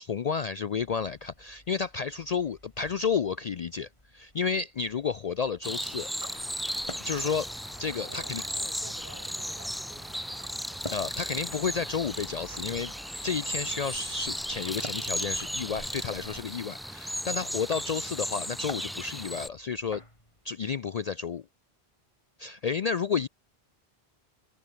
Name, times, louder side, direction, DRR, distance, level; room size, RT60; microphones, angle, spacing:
voice 1, 0.0-6.1 7.0-7.5 7.8-8.4 10.9-12.9 13.2-20.0 20.4-21.4 22.4-23.3, left 6 dB, 50° left, 0.5 m, -31 dB
sound 1, 0.7-20.5, left 1 dB, 30° left, 4.7 m, -51 dB
sound 2, 5.6-19.5, equal, ahead, 0.9 m, -36 dB
sound 3, 6.2-16.4, right 2 dB, 30° right, 3.0 m, -50 dB
voice 2, 8.0-10.5, right 1 dB, 55° right, 7.5 m, -51 dB
omnidirectional pair, 1.1 m